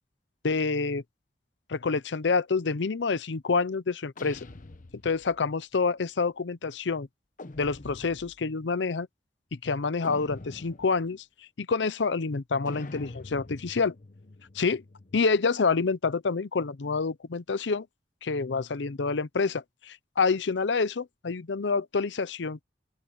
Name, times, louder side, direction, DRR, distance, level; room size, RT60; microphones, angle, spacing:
voice 1, 0.4-1.0 1.7-4.4 5.0-7.1 7.6-9.1 9.6-11.2 11.6-13.9 14.5-14.8 15.1-17.9 18.2-22.6, left 4 dB, 80° left, 0.6 m, -27 dB
sound 1, 4.2-5.5 7.4-8.5 10.0-11.1 12.7-15.3, left 2 dB, 50° left, 1.0 m, -45 dB
open air
head